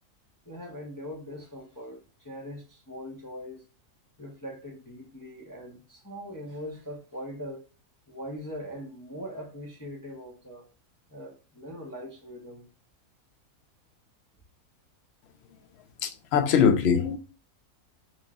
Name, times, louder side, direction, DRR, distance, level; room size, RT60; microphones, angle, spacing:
voice 1, 0.5-3.6 4.2-7.6 8.1-10.6 11.1-12.6, equal, 20° left, 0.6 m, -41 dB
voice 2, 16.0-17.2, left 7 dB, 65° left, 0.7 m, -22 dB
4.4 x 2.5 x 4.2 m
omnidirectional pair, 1.7 m